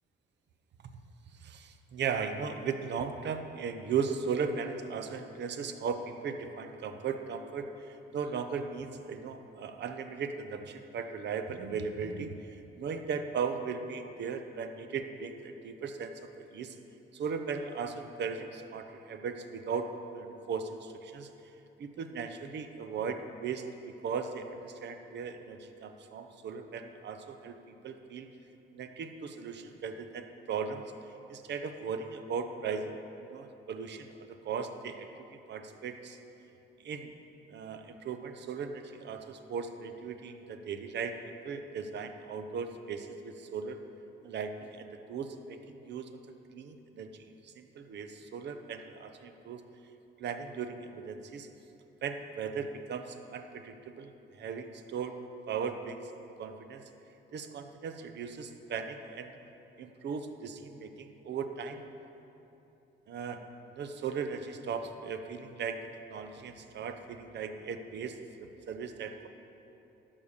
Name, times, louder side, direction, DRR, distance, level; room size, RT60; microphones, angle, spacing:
voice 1, 1.3-16.8 17.1-21.3 21.8-27.6 27.8-28.3 28.7-30.8 31.3-32.9 33.2-36.2 36.8-37.1 37.5-43.8 44.2-46.1 46.5-49.6 50.2-51.5 52.0-55.2 55.5-56.1 56.4-56.9 57.3-59.3 59.8-61.9 63.1-63.5 63.7-69.3, right 6 dB, 60° right, 8 dB, 0.8 m, -37 dB
12.0 x 5.5 x 6.6 m, 2.9 s
cardioid pair, 90°, 20 cm